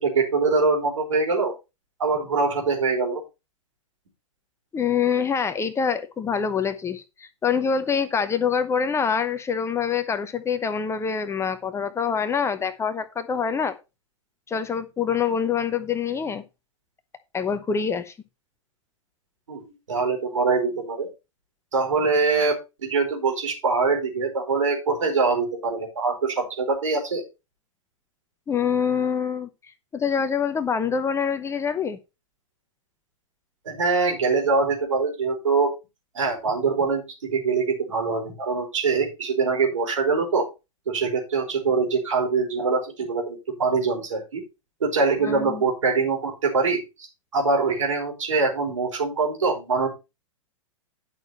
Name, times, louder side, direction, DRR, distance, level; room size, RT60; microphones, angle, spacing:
voice 1, 0.0-1.5 2.0-3.2 19.5-21.1 21.7-27.2 33.6-35.7 36.1-40.5 40.9-44.4 44.8-47.1 47.3-49.9, right 4 dB, 70° right, 1 dB, 4.8 m, -23 dB
voice 2, 4.7-13.7 14.5-16.4 17.3-18.1 28.5-29.5 29.9-32.0 45.2-45.6, left 6 dB, 15° left, 11 dB, 0.9 m, -25 dB
11.0 x 6.4 x 4.2 m, 0.26 s
figure-of-eight pair, 100°, 17 cm